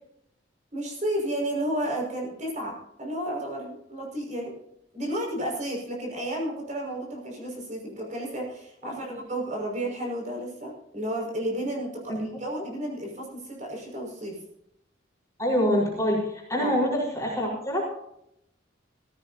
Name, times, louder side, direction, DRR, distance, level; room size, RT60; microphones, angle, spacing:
voice 1, 0.7-4.5 4.9-14.4 16.6-16.8, right 1 dB, 40° right, -1 dB, 5.8 m, -32 dB
voice 2, 15.4-17.8, equal, 15° left, -4 dB, 4.6 m, -26 dB
17.5 x 15.5 x 2.8 m, 0.78 s
head